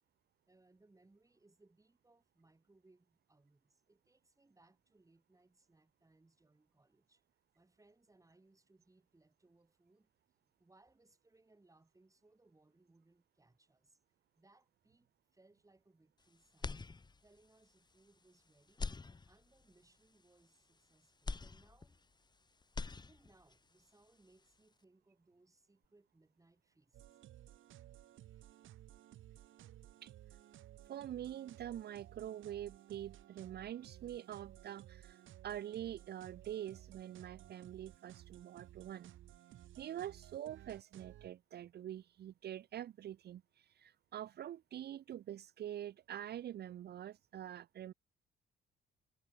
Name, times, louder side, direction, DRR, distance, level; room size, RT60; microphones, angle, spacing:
voice 1, 0.5-7.2 7.5-10.1 10.4-14.0 14.3-16.9 17.2-18.9 19.3-22.0 22.9-27.0 28.3-28.5, right 2 dB, 15° right, 6.1 m, -69 dB
sound 1, 16.6-17.5 17.9-18.0 18.7-19.7 21.2-22.3 22.6-23.6, left 4 dB, 20° left, 1.0 m, -44 dB
sound 2, 26.9-41.3, right 13 dB, 80° right, 3.7 m, -57 dB
voice 2, 30.0-30.4 30.8-39.1 39.8-47.9, right 11 dB, 55° right, 0.6 m, -45 dB
cardioid pair, 90°, 20 cm